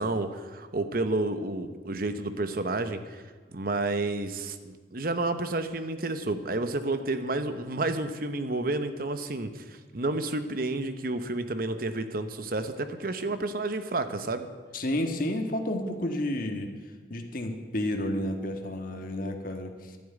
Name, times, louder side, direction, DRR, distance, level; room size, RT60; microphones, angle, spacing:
voice 1, 0.0-3.2 3.5-14.5, right 2 dB, 50° right, 9 dB, 0.9 m, -30 dB
voice 2, 14.7-16.7 17.1-20.0, left 1 dB, 50° left, 5 dB, 1.5 m, -31 dB
12.0 x 7.6 x 10.0 m, 1.4 s
head